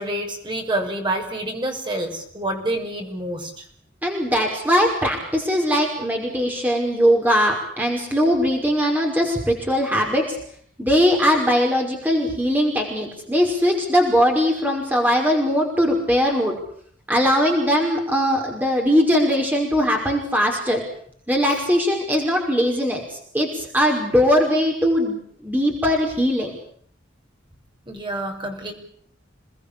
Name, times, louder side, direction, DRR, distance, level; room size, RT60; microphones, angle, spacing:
voice 1, 0.0-3.6 27.9-28.7, right 1 dB, 25° right, 3 dB, 6.2 m, -27 dB
voice 2, 4.0-10.4 10.8-16.6 17.1-20.8 21.3-26.6, equal, 10° right, 1 dB, 5.4 m, -20 dB
29.0 x 20.5 x 8.6 m, 0.62 s
head